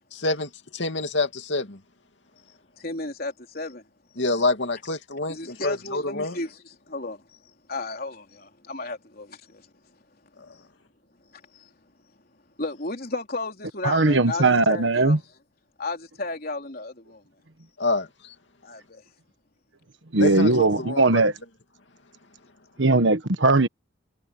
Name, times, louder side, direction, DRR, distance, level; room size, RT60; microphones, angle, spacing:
voice 1, 0.1-1.8 4.2-6.4 17.8-18.3 20.2-21.2, left 2 dB, 70° left, 2.6 m, -27 dB
voice 2, 2.5-3.9 5.3-9.7 10.5-10.7 11.2-11.7 12.6-15.2 15.8-17.2 18.6-19.0, left 2 dB, 50° left, 3.7 m, -34 dB
voice 3, 13.8-15.2 20.1-21.3 22.8-23.7, right 2 dB, 70° right, 1.4 m, -19 dB
head